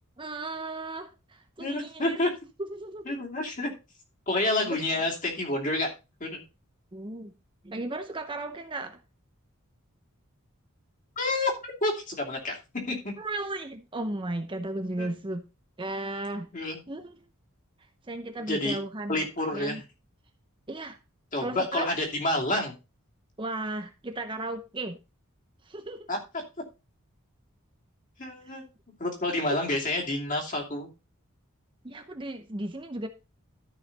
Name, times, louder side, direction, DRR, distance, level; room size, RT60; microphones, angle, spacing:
voice 1, 0.2-2.2 2.7-3.1 4.6-4.8 6.9-7.3 7.6-9.0 13.2-15.4 15.8-16.5 16.9-17.2 18.0-19.8 20.7-21.0 21.4-21.9 23.4-25.0 25.6-26.1 28.4-28.5 29.5-29.6 31.8-33.1, right 2 dB, 25° right, 0.8 m, -35 dB
voice 2, 1.6-2.3 3.1-3.7 4.3-5.9 6.2-6.4 11.2-12.6 12.9-13.1 15.0-15.1 16.5-16.8 18.5-18.8 19.1-19.8 21.3-22.7 26.1-26.2 28.2-28.6 29.0-30.9, left 2 dB, 40° left, 2.8 m, -29 dB
13.0 x 5.7 x 4.1 m
head